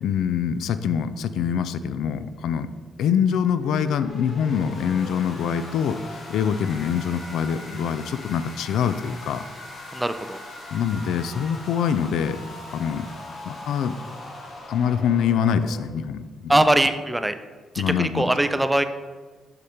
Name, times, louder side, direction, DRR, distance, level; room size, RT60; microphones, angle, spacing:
voice 1, 0.0-2.7 3.0-9.4 10.7-12.5 12.7-13.1 13.5-14.0 14.7-16.6 17.8-18.3, left 7 dB, 80° left, 12 dB, 0.3 m, -24 dB
sound 1, 3.2-15.8, left 2 dB, 45° left, 1.3 m, -40 dB
voice 2, 9.9-10.4 16.5-17.4 17.7-18.8, right 1 dB, 10° right, 10 dB, 0.4 m, -21 dB
6.6 x 4.8 x 4.3 m, 1.4 s
cardioid pair, 90°, 0 cm